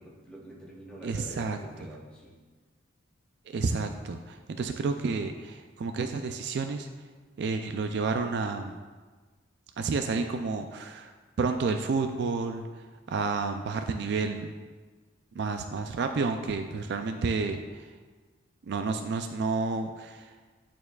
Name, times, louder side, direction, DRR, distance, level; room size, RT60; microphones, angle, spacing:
voice 1, 0.0-2.4, right 1 dB, 5° left, -5 dB, 1.2 m, -46 dB
voice 2, 1.0-1.6 3.5-6.9 7.4-8.8 9.8-11.1 11.4-12.6 13.1-14.5 15.4-17.8 18.7-20.3, right 4 dB, 55° right, 6 dB, 0.3 m, -30 dB
11.0 x 4.4 x 2.3 m, 1.4 s
head